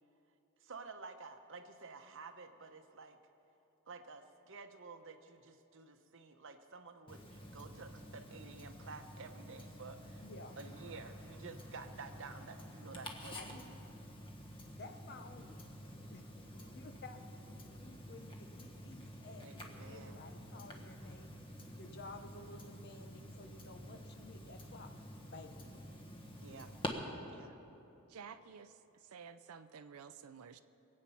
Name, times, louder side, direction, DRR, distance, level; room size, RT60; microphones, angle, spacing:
voice 1, 0.6-3.2 3.9-10.2 10.6-13.8 16.5-16.8 19.4-20.2 26.4-26.7 27.3-27.5, right 4 dB, 60° right, 7 dB, 0.9 m, -51 dB
Tick-tock, 7.1-26.9, equal, 25° left, 1.3 m, -49 dB
voice 2, 10.2-10.6 13.3-13.6 14.8-15.5 15.8-16.3 16.7-17.2 17.4-17.6 17.8-21.3 21.8-24.9 25.3-25.6, left 3 dB, 50° left, 6 dB, 0.9 m, -53 dB
voice 3, 28.1-28.7 29.1-30.6, right 6 dB, 80° right, 10 dB, 0.5 m, -52 dB
23.0 x 8.7 x 5.6 m, 2.8 s
head